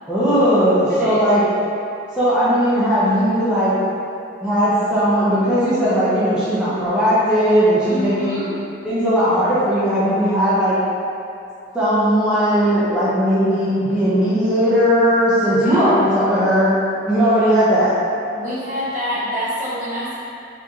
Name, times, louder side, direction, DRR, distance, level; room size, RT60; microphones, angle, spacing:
voice 1, 0.1-1.4 2.1-3.7 4.4-8.4 8.8-10.8 11.7-16.7 17.1-17.9, equal, 5° right, -12 dB, 1.0 m, -17 dB
voice 2, 7.9-8.6 15.6-15.9 17.4-17.6 18.4-20.2, equal, 45° right, -9 dB, 0.9 m, -26 dB
4.8 x 3.4 x 2.9 m, 2.7 s
head